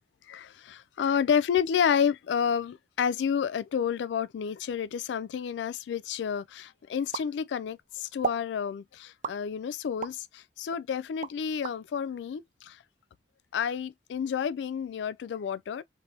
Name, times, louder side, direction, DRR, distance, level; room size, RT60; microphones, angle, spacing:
voice 1, 0.3-12.8 13.5-15.8, left 7 dB, 80° left, 0.3 m, -30 dB
sound 1, 7.1-7.8 8.2-8.5 9.2-10.2 10.7-11.8, right 6 dB, 45° right, 0.3 m, -35 dB
3.3 x 2.7 x 2.8 m
head